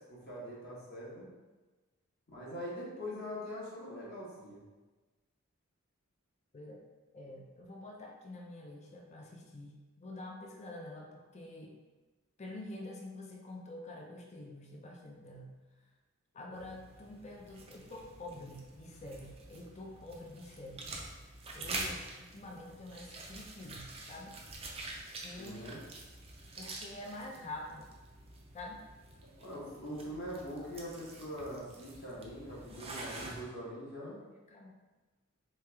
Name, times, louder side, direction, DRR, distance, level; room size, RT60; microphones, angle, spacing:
voice 1, 0.1-1.3 2.3-4.6 25.4-25.8 29.4-34.2, equal, 50° left, -6 dB, 1.2 m, -43 dB
voice 2, 7.1-11.7 12.4-15.6 16.3-21.1 21.5-24.4 25.2-25.7 26.6-27.9 28.5-28.8 32.8-32.9 34.5-34.7, left 1 dB, 30° left, 0 dB, 0.5 m, -47 dB
sound 1, 16.5-33.4, right 2 dB, 30° right, 0.5 m, -47 dB
3.4 x 3.2 x 3.3 m, 1.2 s
head